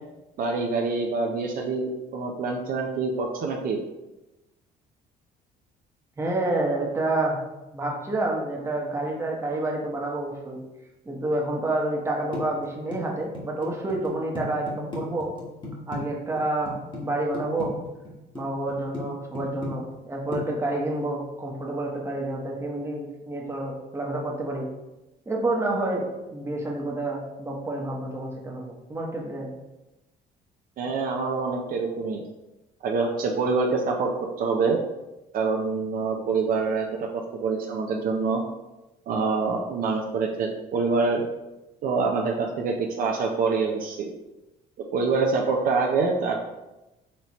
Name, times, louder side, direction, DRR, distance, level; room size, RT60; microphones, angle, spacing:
voice 1, 0.4-3.8 30.8-32.2 32.8-34.8 35.3-38.4 39.1-41.3 41.8-44.1 44.8-46.4, right 4 dB, 55° right, 1 dB, 0.5 m, -26 dB
voice 2, 6.2-7.4 7.7-10.6 11.1-15.3 15.9-17.7 18.3-24.7 25.3-29.5, right 2 dB, 15° right, -1 dB, 0.9 m, -29 dB
sound 1, 12.3-16.0 16.4-17.0 17.3-18.4 18.7-19.0 19.3-20.1 20.3-20.4, left 2 dB, 30° left, 1.2 m, -35 dB
4.2 x 3.2 x 2.9 m, 1.0 s
cardioid pair, 110°, 17 cm